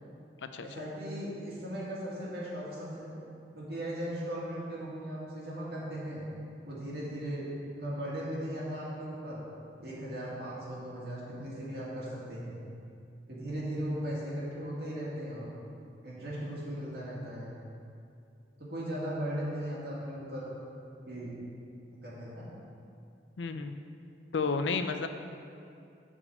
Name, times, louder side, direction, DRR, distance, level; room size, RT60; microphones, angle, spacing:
voice 1, 0.6-3.1 3.5-6.2 6.7-7.5 7.7-9.4 9.8-12.6 13.3-15.5 16.0-17.5 18.6-20.5 21.1-21.4 22.0-22.4, equal, 60° right, -6 dB, 2.1 m, -37 dB
voice 2, 23.4-23.8 24.3-25.1, left 4 dB, 85° left, 8 dB, 0.5 m, -31 dB
7.1 x 4.8 x 6.7 m, 2.5 s
head